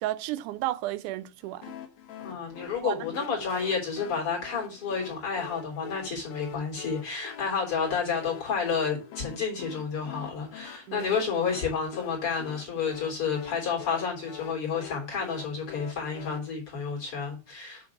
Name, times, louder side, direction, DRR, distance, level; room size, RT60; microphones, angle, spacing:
voice 1, 0.0-1.7 2.8-3.3 10.9-11.1, right 15 dB, 80° right, 1.9 m, -33 dB
sound 1, 1.6-16.4, left 10 dB, 65° left, 2.1 m, -45 dB
voice 2, 2.2-17.9, left 5 dB, 40° left, 4.1 m, -30 dB
8.8 x 3.8 x 6.1 m
omnidirectional pair, 3.9 m